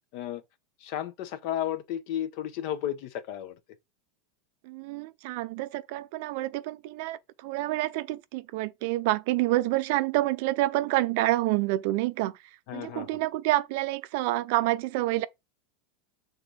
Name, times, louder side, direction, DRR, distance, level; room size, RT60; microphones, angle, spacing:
voice 1, 0.8-3.5 12.7-13.1, left 11 dB, 55° left, 0.8 m, -33 dB
voice 2, 4.6-12.3 12.7-15.3, right 17 dB, 60° right, 0.6 m, -28 dB
6.8 x 3.7 x 4.3 m
supercardioid pair, 150°, 0 cm